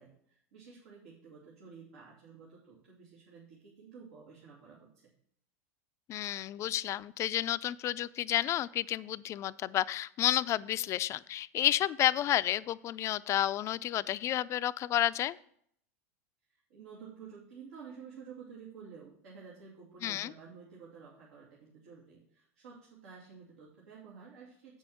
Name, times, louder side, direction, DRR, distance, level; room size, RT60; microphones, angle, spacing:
voice 1, 0.0-5.1 16.5-24.8, right 6 dB, 85° right, -5 dB, 2.6 m, -52 dB
voice 2, 6.1-15.4 20.0-20.3, left 12 dB, 35° left, 15 dB, 0.4 m, -31 dB
8.0 x 6.3 x 5.7 m, 0.66 s
supercardioid pair, 115°, 8 cm